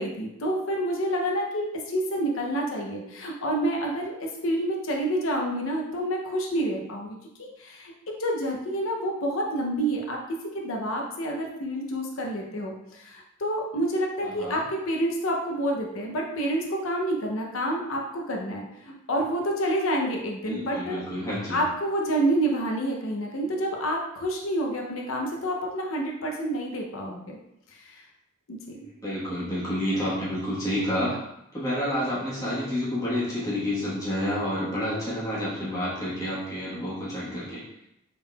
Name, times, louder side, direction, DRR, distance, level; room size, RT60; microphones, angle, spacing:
voice 1, 0.0-21.0 21.5-27.4 27.7-28.0 28.5-28.8, right 1 dB, 65° left, 0 dB, 0.6 m, -28 dB
voice 2, 14.2-14.6 20.4-21.6 29.0-31.2 31.5-37.6, equal, 15° left, -8 dB, 1.2 m, -29 dB
3.6 x 3.5 x 2.3 m, 0.82 s
head